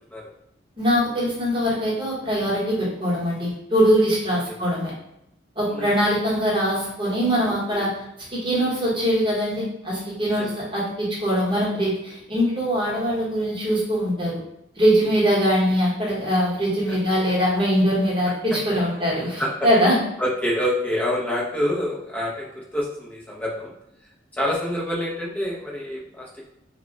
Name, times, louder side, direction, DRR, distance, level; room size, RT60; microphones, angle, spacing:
voice 1, 0.8-4.9 5.6-7.9 8.3-14.3 14.8-20.0, equal, 25° right, -6 dB, 0.9 m, -22 dB
voice 2, 7.4-7.9 10.4-10.5 16.9-17.0 18.5-18.6 19.4-19.5 20.2-23.7 24.3-26.5, left 1 dB, 10° left, -5 dB, 0.5 m, -27 dB
2.1 x 2.1 x 3.7 m, 0.80 s
head